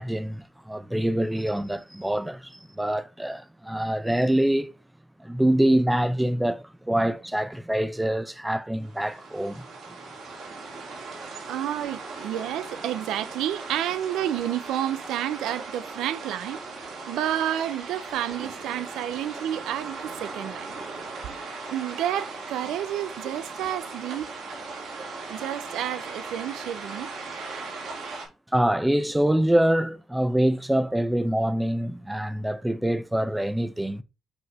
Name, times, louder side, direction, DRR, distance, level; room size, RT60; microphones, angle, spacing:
voice 1, 0.0-4.7 5.2-9.6 28.5-34.0, right 1 dB, 5° right, 0.7 m, -25 dB
sound 1, 8.8-28.3, right 3 dB, 70° right, 3.5 m, -38 dB
voice 2, 11.5-16.6 17.1-20.7 21.7-24.3 25.3-27.1, right 11 dB, 90° right, 0.5 m, -30 dB
8.0 x 3.9 x 3.0 m
cardioid pair, 90°, 0 cm